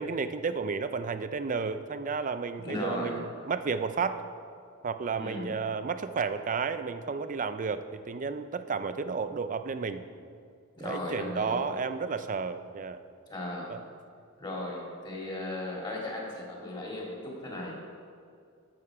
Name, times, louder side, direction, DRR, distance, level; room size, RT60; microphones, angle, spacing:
voice 1, 0.0-4.2 4.8-10.0 10.8-13.0 13.7-13.8, right 5 dB, 40° right, 11 dB, 0.5 m, -32 dB
voice 2, 2.6-3.2 5.2-5.5 10.7-11.7 13.3-13.7 14.4-17.7, left 1 dB, 20° left, -3 dB, 2.3 m, -36 dB
12.5 x 7.1 x 4.8 m, 2.3 s
head